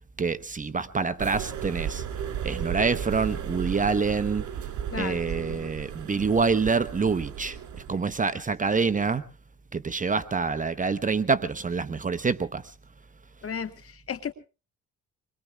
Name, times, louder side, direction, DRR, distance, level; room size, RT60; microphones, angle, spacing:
voice 1, 0.2-2.0 2.4-4.4 5.0-9.2 9.7-12.7, right 4 dB, 25° right, 12 dB, 0.8 m, -26 dB
sound 1, 1.2-8.1, right 9 dB, 75° right, 2.9 m, -34 dB
voice 2, 4.9-5.7 13.4-14.3, left 7 dB, 50° left, 9 dB, 1.8 m, -35 dB
25.0 x 22.0 x 2.3 m, 0.33 s
cardioid pair, 90°, 30 cm